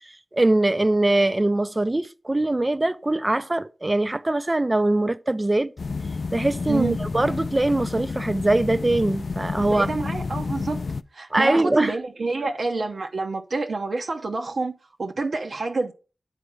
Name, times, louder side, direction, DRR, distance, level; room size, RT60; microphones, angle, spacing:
voice 1, 0.3-5.7 6.3-9.9 11.3-11.9, right 2 dB, 25° right, 0.5 m, -22 dB
sound 1, 5.8-11.0, left 4 dB, 65° left, 0.3 m, -30 dB
voice 2, 9.7-10.8 11.1-14.7 15.0-15.9, right 3 dB, 70° right, 0.8 m, -27 dB
9.9 x 4.1 x 4.8 m
wide cardioid pair, 90°, 0 cm